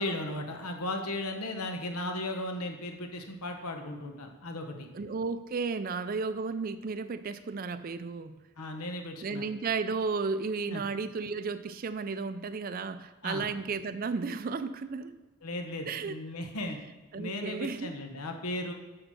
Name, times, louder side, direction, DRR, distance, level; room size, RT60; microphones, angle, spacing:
voice 1, 0.0-4.9 8.6-9.5 10.7-10.8 13.2-13.4 15.4-16.8 17.2-18.7, left 1 dB, 85° left, 4 dB, 1.1 m, -36 dB
voice 2, 4.9-8.4 9.2-15.2 15.9-16.1 17.1-18.0, right 4 dB, 40° right, 12 dB, 0.4 m, -33 dB
6.8 x 6.6 x 5.9 m, 1.2 s
head